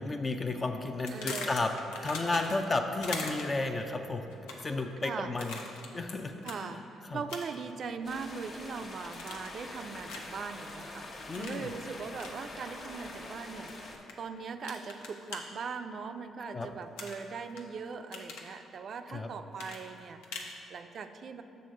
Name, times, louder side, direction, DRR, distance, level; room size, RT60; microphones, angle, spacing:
voice 1, 0.0-1.7 2.0-4.2 4.6-5.6 5.9-6.8 7.1-7.2 11.3-11.7 16.5-16.7 19.1-19.3, left 2 dB, 35° left, 5 dB, 0.5 m, -33 dB
sound 1, 1.1-2.7 3.0-3.7 4.3-4.8 5.4-6.1 6.4-6.6 7.3-7.7 8.1-8.7 9.1-9.6 10.1-10.4 11.3-11.6 12.2-12.4 13.7-14.1 14.6-15.4 17.0-17.6 17.9-18.5 19.6-20.6, left 4 dB, 90° left, 0.7 m, -41 dB
voice 2, 1.1-1.6 5.0-5.3 6.4-11.1 11.4-21.4, right 5 dB, 60° right, 8 dB, 0.4 m, -40 dB
sound 2, 8.0-14.0, left 2 dB, 55° left, 1.0 m, -45 dB
6.6 x 3.8 x 6.3 m, 2.9 s
supercardioid pair, 60°, 0 cm